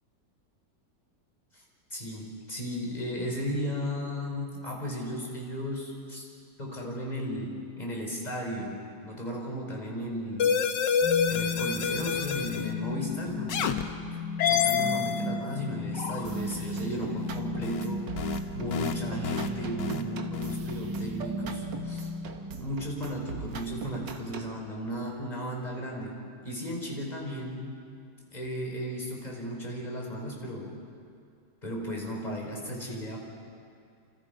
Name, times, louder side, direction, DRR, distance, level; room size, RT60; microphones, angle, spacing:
voice 1, 1.9-6.3 6.6-10.6 11.3-13.8 14.1-14.2 14.5-22.1 22.6-26.2 26.4-27.7 28.3-30.7 31.6-33.2, equal, 20° left, -1 dB, 5.0 m, -35 dB
sound 1, 10.4-12.7 13.5-13.8 14.4-15.3 15.9-16.4 17.6-17.8 18.2-18.4 18.7-18.9 19.2-19.5 19.8-20.0 20.3-20.5, left 7 dB, 75° left, 1.7 m, -28 dB
sound 2, 11.0-23.0, left 3 dB, 15° right, 2.1 m, -36 dB
sound 3, 16.2-24.6, right 5 dB, 80° right, 2.0 m, -41 dB
28.5 x 28.0 x 5.4 m, 2.4 s
omnidirectional pair, 1.9 m